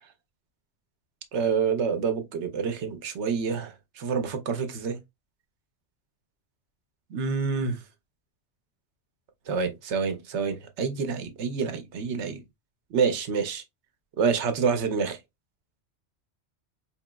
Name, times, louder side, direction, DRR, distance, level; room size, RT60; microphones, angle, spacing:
voice 1, 1.3-5.0 7.1-7.8 9.5-12.4 12.9-13.6 14.2-15.2, right 5 dB, 80° right, 1.0 m, -27 dB
4.5 x 2.9 x 2.2 m
omnidirectional pair, 1.1 m